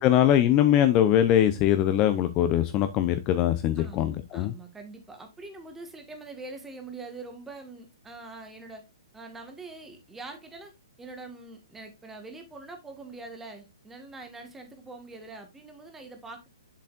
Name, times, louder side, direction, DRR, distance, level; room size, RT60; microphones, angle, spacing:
voice 1, 0.0-4.5, left 11 dB, 30° left, 0.6 m, -22 dB
voice 2, 3.8-8.8 9.1-10.7 11.0-16.5, right 3 dB, 10° right, 1.6 m, -44 dB
7.6 x 7.1 x 2.5 m
hypercardioid pair, 130°, 3 cm